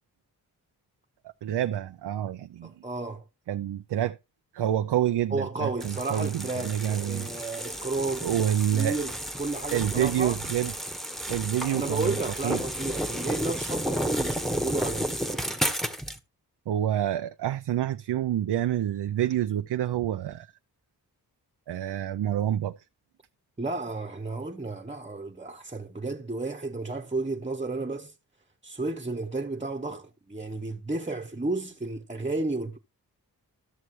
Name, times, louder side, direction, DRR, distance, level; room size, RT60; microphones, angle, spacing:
voice 1, 1.4-2.7 3.5-4.2 4.5-7.3 8.2-9.0 9.7-10.7 11.3-12.1 12.4-12.6 16.7-20.5 21.7-22.8, right 11 dB, 80° right, 0.6 m, -27 dB
voice 2, 2.6-3.2 5.3-8.3 8.7-10.4 11.7-15.5 23.6-28.1 28.6-32.8, right 3 dB, 15° right, 1.1 m, -32 dB
sound 1, 5.8-16.2, equal, ahead, 1.3 m, -32 dB
14.0 x 6.6 x 3.1 m
cardioid pair, 40°, 40 cm